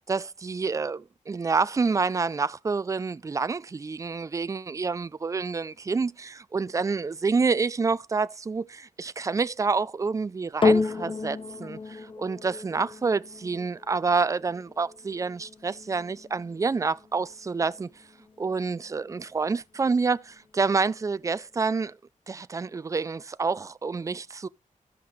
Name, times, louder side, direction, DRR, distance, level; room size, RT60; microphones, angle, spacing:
voice 1, 0.1-17.9 18.4-22.0 22.3-24.5, right 4 dB, 25° right, 0.4 m, -28 dB
sound 1, 10.6-19.2 19.9-20.0, left 3 dB, 40° left, 0.7 m, -31 dB
15.0 x 5.5 x 3.1 m
wide cardioid pair, 155°, 14 cm